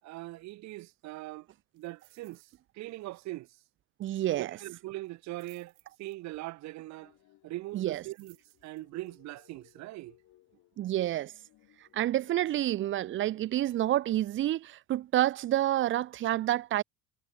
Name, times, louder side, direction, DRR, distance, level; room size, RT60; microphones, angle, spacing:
voice 1, 0.0-1.5 1.7-3.6 4.4-5.7 6.0-7.1 7.4-8.4 8.6-10.2, right 18 dB, 55° right, 1.0 m, -41 dB
sound 1, 1.7-2.6 2.9-3.2 3.4-3.5 5.0-6.5 7.8-9.1 9.6-9.7, right 31 dB, 90° right, 5.3 m, -64 dB
voice 2, 4.0-4.5 7.7-8.0 10.8-11.3 11.9-16.8, right 13 dB, 35° right, 0.6 m, -28 dB
sound 2, 6.8-13.4, left 16 dB, 60° left, 6.5 m, -64 dB
cardioid pair, 145°, 34 cm